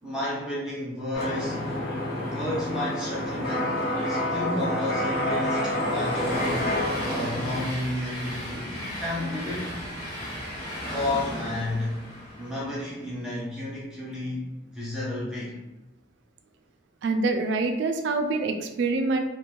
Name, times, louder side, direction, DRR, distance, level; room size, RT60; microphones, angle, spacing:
voice 1, 0.0-1.6 2.1-3.8 4.1-6.7 7.1-9.8 10.9-12.0 12.4-14.5 14.7-15.6, left 1 dB, 5° right, -7 dB, 0.5 m, -32 dB
sound 1, 1.1-7.7, left 1 dB, 50° left, 0.6 m, -28 dB
Train, 3.6-13.1, equal, 30° left, 1.0 m, -36 dB
voice 2, 17.0-19.2, right 3 dB, 65° right, 6 dB, 0.3 m, -25 dB
2.5 x 2.2 x 2.8 m, 0.98 s
head